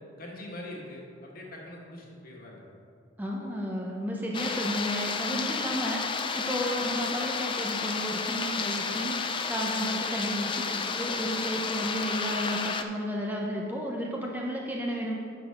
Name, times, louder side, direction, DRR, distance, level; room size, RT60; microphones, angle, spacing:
voice 1, 0.2-2.6, left 1 dB, 45° left, -2 dB, 1.7 m, -43 dB
voice 2, 3.2-15.1, equal, 10° right, -2 dB, 0.7 m, -32 dB
sound 1, 4.3-12.8, left 5 dB, 25° left, 0.4 m, -31 dB
8.3 x 6.2 x 5.1 m, 2.3 s
head